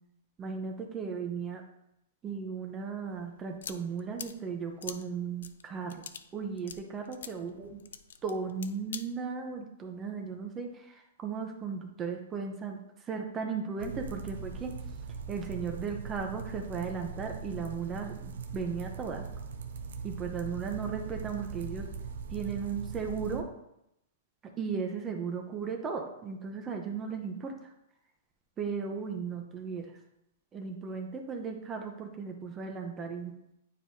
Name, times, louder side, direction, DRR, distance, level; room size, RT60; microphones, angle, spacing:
voice 1, 0.4-1.6 2.2-6.0 6.3-7.8 8.2-14.7 15.3-19.3 20.0-21.9 22.3-23.4 24.6-27.7 28.6-29.9 30.5-33.3, right 5 dB, 20° right, 3 dB, 0.7 m, -36 dB
sound 1, 3.1-9.0, left 7 dB, 85° left, 0.4 m, -46 dB
sound 2, 13.8-23.4, right 5 dB, 80° right, 0.7 m, -40 dB
9.3 x 4.6 x 2.7 m, 0.82 s
hypercardioid pair, 145°, 0 cm